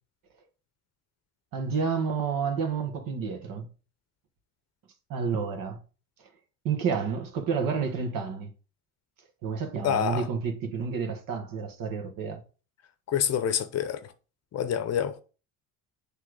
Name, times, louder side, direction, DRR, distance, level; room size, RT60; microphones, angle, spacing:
voice 1, 1.5-3.7 5.1-5.8 6.2-6.3 6.6-8.5 9.4-12.4, right 6 dB, 60° right, 1.6 m, -30 dB
voice 2, 9.8-10.3 13.1-14.1 14.5-15.2, left 9 dB, 45° left, 0.7 m, -27 dB
8.5 x 3.4 x 4.8 m
cardioid pair, 140°, 37 cm